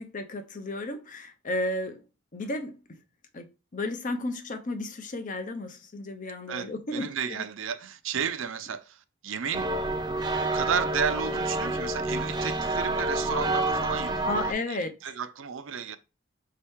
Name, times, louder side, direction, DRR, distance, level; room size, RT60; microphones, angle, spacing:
voice 1, 0.0-2.0 2.3-3.0 3.3-7.4 14.2-14.9, left 1 dB, 40° left, 0.6 m, -33 dB
voice 2, 6.5-9.7 10.4-16.0, right 7 dB, 70° right, 0.5 m, -33 dB
sound 1, 9.5-14.5, right 2 dB, 20° right, 0.5 m, -28 dB
5.3 x 2.8 x 3.5 m
head